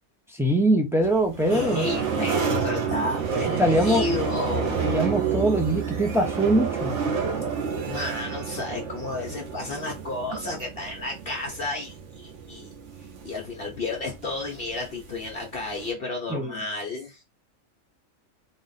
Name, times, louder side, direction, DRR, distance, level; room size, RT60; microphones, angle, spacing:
voice 1, 0.4-1.9 3.6-4.0 4.8-6.9 16.3-16.6, right 1 dB, 5° right, 0.5 m, -22 dB
sound 1, 1.0-15.9, right 6 dB, 65° right, 1.1 m, -30 dB
voice 2, 1.5-5.0 7.9-12.7 13.0-17.2, left 3 dB, 50° left, 1.1 m, -32 dB
3.9 x 2.5 x 4.0 m
omnidirectional pair, 1.4 m